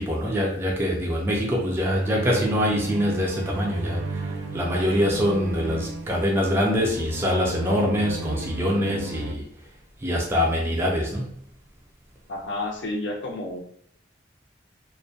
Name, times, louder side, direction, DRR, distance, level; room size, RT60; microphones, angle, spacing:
voice 1, 0.0-9.4 10.0-11.3, equal, 15° right, -3 dB, 0.4 m, -24 dB
sound 1, 1.9-9.3, right 2 dB, 90° right, 0.3 m, -33 dB
voice 2, 12.3-13.6, left 2 dB, 80° left, 1 dB, 0.5 m, -30 dB
2.3 x 2.1 x 2.5 m, 0.63 s
head